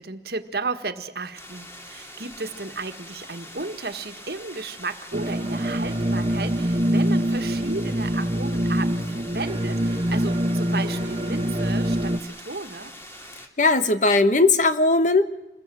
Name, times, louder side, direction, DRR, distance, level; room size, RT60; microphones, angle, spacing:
voice 1, 0.0-12.9, right 3 dB, 60° right, 8 dB, 1.6 m, -34 dB
sound 1, 1.4-13.5, left 1 dB, 15° left, 2.7 m, -43 dB
sound 2, 5.1-12.2, equal, 30° right, 1.4 m, -24 dB
voice 2, 13.6-15.2, left 3 dB, 45° left, 10 dB, 1.3 m, -18 dB
27.5 x 21.5 x 7.7 m, 0.90 s
head